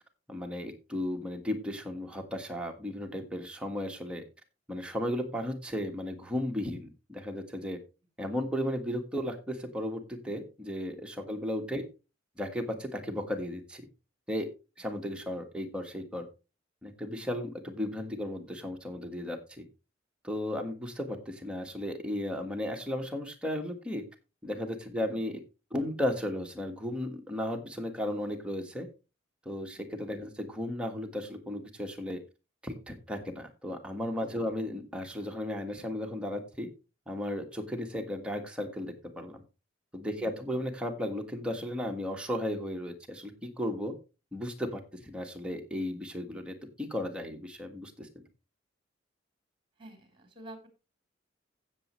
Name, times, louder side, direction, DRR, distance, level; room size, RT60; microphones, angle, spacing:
voice 1, 0.3-4.2 4.7-7.8 8.2-11.8 12.4-13.8 14.3-14.5 14.8-16.3 16.8-19.6 20.2-24.0 24.4-25.4 25.7-28.9 29.4-32.2 32.6-36.7 37.1-39.4 39.9-43.9 44.3-48.1, left 1 dB, 5° right, 2 dB, 1.6 m, -35 dB
voice 2, 40.2-40.5 49.8-50.7, right 1 dB, 25° right, 5 dB, 3.6 m, -50 dB
15.5 x 7.2 x 3.2 m, 0.29 s
head